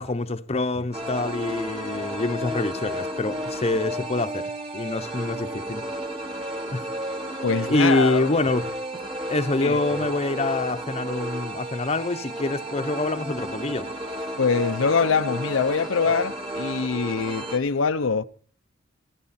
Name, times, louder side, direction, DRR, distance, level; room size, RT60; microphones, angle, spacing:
voice 1, 0.0-4.5 4.7-5.8 6.7-6.9 7.7-8.7 8.9-9.0 9.3-13.9, left 2 dB, 30° left, 0.8 m, -26 dB
sound 1, 0.9-17.6, equal, 30° right, 2.5 m, -32 dB
voice 2, 7.4-8.4 9.6-9.8 14.4-18.2, left 5 dB, 85° left, 0.7 m, -24 dB
26.5 x 9.8 x 4.2 m
head